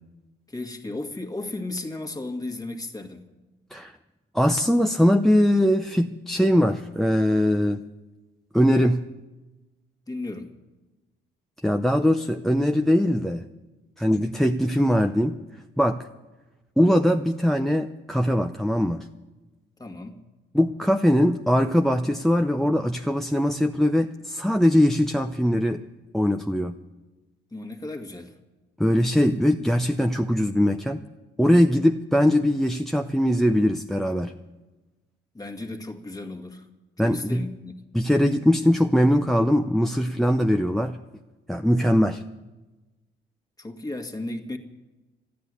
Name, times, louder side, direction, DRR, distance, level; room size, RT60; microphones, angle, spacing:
voice 1, 0.5-3.2 10.1-10.5 19.8-20.2 27.5-28.3 35.3-36.7 37.0-37.8 43.6-44.6, left 2 dB, 20° left, 5 dB, 1.8 m, -34 dB
voice 2, 4.3-7.8 8.5-9.0 11.6-13.5 14.0-15.4 15.8-16.0 16.8-19.1 20.5-25.8 26.1-26.8 28.8-31.0 31.4-34.3 37.0-37.4 37.9-41.0 41.5-42.2, equal, ahead, 6 dB, 0.6 m, -21 dB
13.5 x 10.5 x 9.6 m, 1.1 s
cardioid pair, 90°, 20 cm